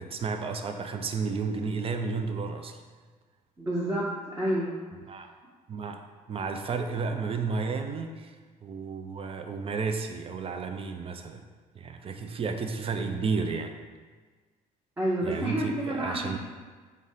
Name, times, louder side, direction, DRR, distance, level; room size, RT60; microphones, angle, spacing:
voice 1, 0.0-2.8 5.1-5.3 5.7-6.0 6.3-8.4 8.6-11.4 11.8-13.8 15.2-16.4, right 4 dB, 30° right, 6 dB, 0.4 m, -32 dB
voice 2, 3.6-4.7 15.0-16.4, right 1 dB, 15° right, -7 dB, 0.8 m, -29 dB
3.6 x 2.1 x 3.8 m, 1.4 s
hypercardioid pair, 60°, 18 cm